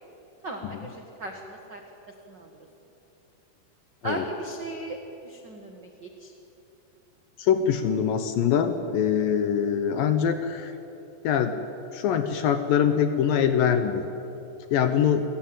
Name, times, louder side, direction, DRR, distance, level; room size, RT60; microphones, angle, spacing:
voice 1, 0.4-1.8 2.3-2.7 4.0-5.0 5.2-6.3, right 2 dB, 60° right, 3 dB, 1.1 m, -37 dB
voice 2, 7.4-10.7 11.2-11.6 11.9-14.1 14.7-15.2, left 8 dB, 70° left, 9 dB, 2.3 m, -23 dB
29.0 x 17.0 x 9.0 m, 3.0 s
omnidirectional pair, 4.9 m